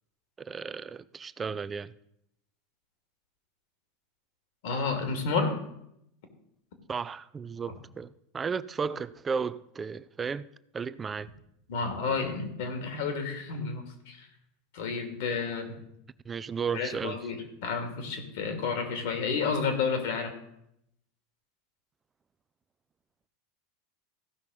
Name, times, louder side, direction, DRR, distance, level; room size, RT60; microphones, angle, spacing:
voice 1, 0.4-1.9 6.9-10.5 10.7-11.3 16.2-17.2, right 6 dB, 25° right, 0.5 m, -34 dB
voice 2, 4.6-5.6 11.7-14.3 14.7-15.7 16.7-20.3, left 5 dB, 65° left, 2.6 m, -31 dB
15.5 x 5.9 x 5.3 m
hypercardioid pair, 90°, 0 cm